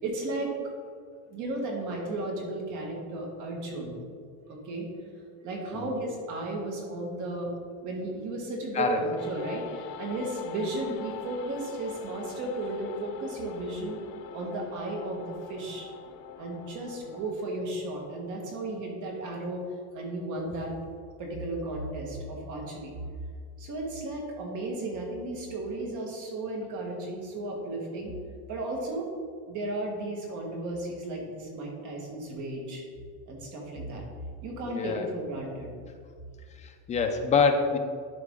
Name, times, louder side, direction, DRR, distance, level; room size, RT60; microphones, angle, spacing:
voice 1, 0.0-0.5 1.3-4.0 4.5-4.9 5.4-7.5 7.8-14.0 14.3-15.9 16.4-19.6 19.9-20.7 21.2-22.9 23.6-28.1 28.5-29.0 29.5-32.8 33.3-34.0 34.4-35.7, right 2 dB, 45° right, 0 dB, 1.8 m, -34 dB
sound 1, 9.2-17.3, left 8 dB, 80° left, 0.8 m, -44 dB
voice 2, 34.7-35.1 36.6-37.8, left 5 dB, 20° left, 5 dB, 0.3 m, -25 dB
12.0 x 4.8 x 3.7 m, 2.1 s
cardioid pair, 170°, 40 cm